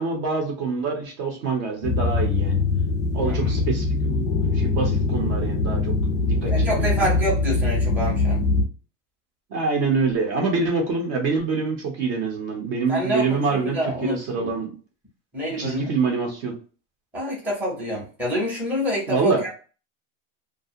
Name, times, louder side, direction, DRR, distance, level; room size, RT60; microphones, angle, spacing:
voice 1, 0.0-2.6 3.1-5.9 6.2-7.1 9.5-14.8 15.6-16.5 19.1-19.4, right 4 dB, 40° right, 1 dB, 0.8 m, -26 dB
sound 1, 1.8-8.7, left 3 dB, 35° left, 0.4 m, -22 dB
voice 2, 3.2-3.7 6.4-8.4 12.9-14.5 15.3-15.9 17.1-19.5, equal, 5° right, -6 dB, 0.7 m, -27 dB
2.4 x 2.3 x 2.6 m, 0.38 s
supercardioid pair, 165°, 40 cm